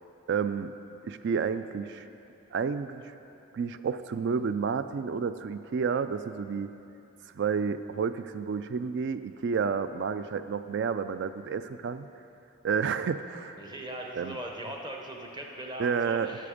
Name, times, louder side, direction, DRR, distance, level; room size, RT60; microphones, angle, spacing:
voice 1, 0.3-0.7 1.0-2.1 2.5-3.0 3.5-6.7 7.4-12.1 12.6-13.6 14.2-14.4 15.8-16.3, right 6 dB, 55° right, 12 dB, 0.3 m, -30 dB
voice 2, 13.6-16.5, right 1 dB, 20° right, 1 dB, 0.8 m, -39 dB
12.0 x 6.7 x 5.1 m, 2.8 s
head